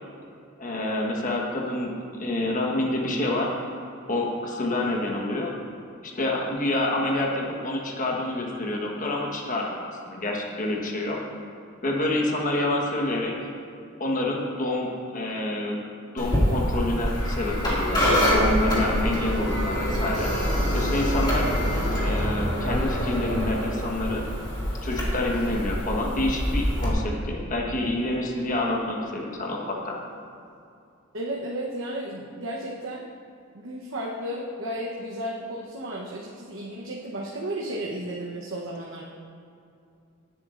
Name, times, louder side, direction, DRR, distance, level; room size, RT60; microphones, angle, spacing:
voice 1, 0.6-1.9 2.2-3.5 4.1-5.5 6.0-11.2 11.8-13.4 14.0-15.8 16.1-20.3 20.7-21.5 22.0-24.2 24.8-30.0, left 1 dB, 40° left, -1 dB, 1.3 m, -27 dB
sound 1, 16.2-26.9, equal, 20° left, 2.3 m, -25 dB
voice 2, 31.1-33.0 33.5-39.0, right 1 dB, 70° right, -3 dB, 1.0 m, -33 dB
17.5 x 8.3 x 2.6 m, 2.5 s
head